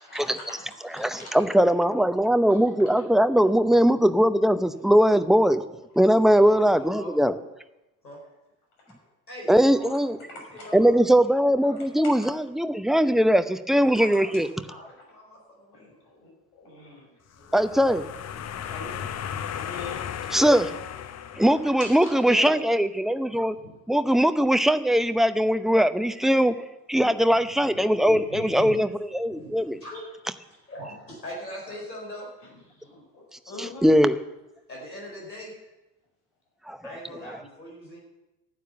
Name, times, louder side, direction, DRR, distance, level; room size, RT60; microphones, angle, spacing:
voice 1, 0.0-1.3 2.5-2.6 8.8-8.9 10.3-10.7 12.0-12.3 14.1-14.5 14.8-15.0 15.7-17.6 18.6-19.3 19.6-20.1 21.8-22.6 32.4-33.9, left 2 dB, 65° left, 0 dB, 6.4 m, -42 dB
voice 2, 1.0-5.6 5.9-7.4 9.5-10.2 10.7-14.5 17.5-18.0 20.3-20.7 21.4-23.6 23.9-26.5 26.9-29.8 33.6-34.2 36.7-36.8, equal, ahead, 10 dB, 0.7 m, -20 dB
voice 3, 6.3-7.1 8.0-8.2 9.3-10.9 11.6-11.8 13.8-16.0 23.3-23.7 26.9-28.8 29.3-32.3 34.7-35.7 36.8-38.0, equal, 90° left, -2 dB, 4.7 m, -42 dB
sound 1, 17.4-22.1, left 9 dB, 30° left, 0.9 m, -35 dB
14.5 x 9.4 x 7.0 m, 1.0 s
figure-of-eight pair, 65°, 49 cm